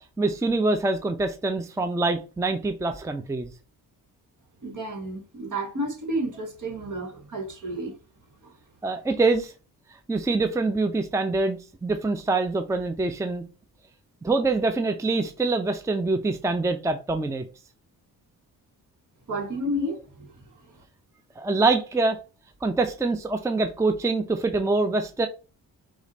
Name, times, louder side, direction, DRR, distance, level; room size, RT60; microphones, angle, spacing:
voice 1, 0.2-3.5 8.8-9.5 10.1-13.4 14.2-17.5 21.4-22.2 22.6-25.3, right 3 dB, 10° right, 0.5 m, -25 dB
voice 2, 4.6-7.9 8.4-8.5 19.3-20.3, right 1 dB, 55° right, 1.7 m, -31 dB
4.8 x 2.5 x 4.1 m
cardioid pair, 85°, 36 cm